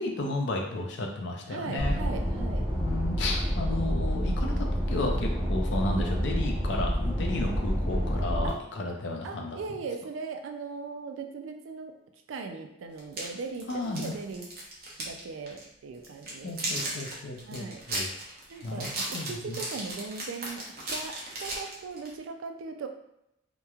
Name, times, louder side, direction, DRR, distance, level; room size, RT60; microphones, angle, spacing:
voice 1, 0.0-2.0 2.8-9.6 13.7-14.1 16.4-18.1 18.6-19.7, left 2 dB, 65° left, 1 dB, 0.4 m, -33 dB
voice 2, 1.5-2.7 8.4-8.6 9.2-12.0 12.3-14.5 15.0-17.0 17.4-17.8 18.5-22.9, right 4 dB, 90° right, 6 dB, 0.3 m, -39 dB
sound 1, 1.8-8.5, equal, 5° right, 0.7 m, -28 dB
sound 2, 13.0-15.2 15.5-15.6 16.0-22.1, right 2 dB, 50° right, 0.6 m, -35 dB
2.9 x 2.1 x 2.3 m, 0.83 s
head